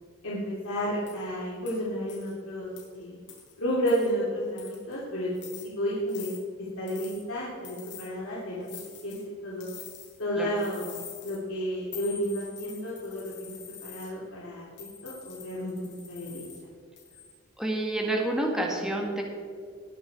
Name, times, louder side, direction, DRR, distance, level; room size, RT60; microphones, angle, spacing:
voice 1, 0.2-3.2 3.6-6.3 6.6-8.7 9.0-9.7 10.2-11.0 11.2-16.5, equal, 85° left, -6 dB, 2.6 m, -32 dB
sound 1, 1.1-1.2 1.7-1.8 2.1-2.3 2.8-2.9 3.3-3.5 3.9-4.1 4.6-4.9 5.3-5.7 6.1-6.4 6.9-7.2 7.6-8.1 8.6-9.2 9.6-10.2 10.6-11.4 11.9-14.1 14.8-16.6 17.0-17.3, left 8 dB, 60° left, 3.9 m, -45 dB
voice 2, 17.6-19.2, right 1 dB, 5° right, 0 dB, 1.7 m, -28 dB
19.5 x 7.0 x 4.7 m, 2.1 s
head